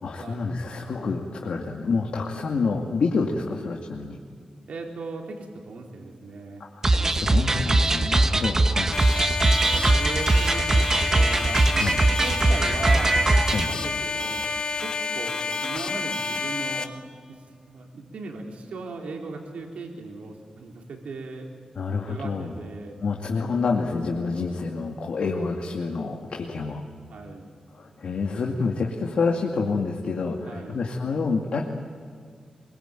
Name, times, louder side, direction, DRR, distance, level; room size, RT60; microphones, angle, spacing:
voice 1, 0.0-4.2 6.7-9.0 11.8-12.0 13.5-13.7 21.8-22.6 23.0-26.8 27.7-31.6, left 4 dB, 65° left, 0 dB, 2.4 m, -28 dB
voice 2, 4.7-6.7 8.3-8.4 10.0-11.9 12.2-13.2 13.6-14.4 14.8-16.9 17.3-21.5 22.1-23.0 27.1-27.5 30.5-30.8, right 3 dB, 85° right, 1 dB, 3.7 m, -37 dB
sound 1, 6.8-13.7, right 2 dB, 25° right, 1.1 m, -21 dB
sound 2, 8.9-16.8, left 3 dB, 50° left, 1.9 m, -29 dB
24.5 x 23.0 x 9.2 m, 2.1 s
wide cardioid pair, 150°, 2 cm